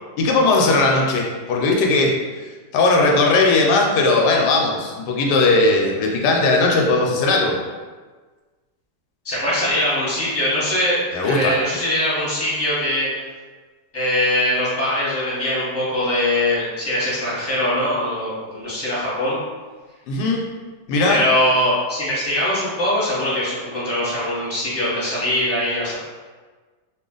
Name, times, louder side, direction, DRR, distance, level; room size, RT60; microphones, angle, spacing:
voice 1, 0.2-2.2 2.7-7.6 11.1-11.6 20.1-20.4 20.9-21.2, left 3 dB, 85° left, 0 dB, 1.2 m, -18 dB
voice 2, 9.2-13.1 13.9-19.4 21.1-25.9, left 1 dB, 10° left, -9 dB, 0.9 m, -22 dB
2.8 x 2.4 x 3.8 m, 1.4 s
omnidirectional pair, 1.7 m